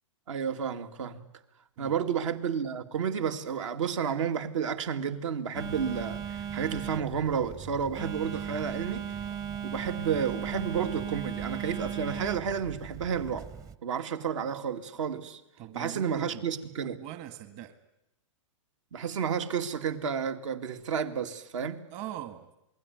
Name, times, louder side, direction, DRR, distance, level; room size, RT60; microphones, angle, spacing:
voice 1, 0.3-1.3 1.8-9.0 9.6-13.5 13.8-15.4 15.7-17.0 18.9-21.8, right 7 dB, 70° right, 7 dB, 2.5 m, -31 dB
Telephone, 5.5-13.8, right 8 dB, 20° right, 0.9 m, -37 dB
voice 2, 15.6-16.4 17.0-17.8 21.9-22.6, right 12 dB, 40° right, 10 dB, 1.8 m, -41 dB
28.0 x 20.5 x 9.4 m, 0.86 s
hypercardioid pair, 140°, 16 cm